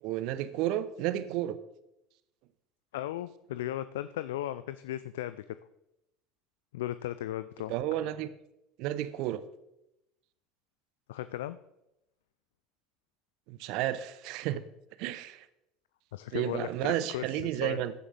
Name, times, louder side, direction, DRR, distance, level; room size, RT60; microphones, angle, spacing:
voice 1, 0.0-1.6 7.7-8.3 8.8-9.4 13.5-14.6 15.0-15.4 16.3-17.9, right 13 dB, 60° right, 15 dB, 0.8 m, -32 dB
voice 2, 2.9-5.4 6.7-7.7 11.1-11.6 16.1-17.8, left 13 dB, 70° left, 13 dB, 0.4 m, -36 dB
15.0 x 10.0 x 3.4 m, 0.87 s
figure-of-eight pair, 70°, 0 cm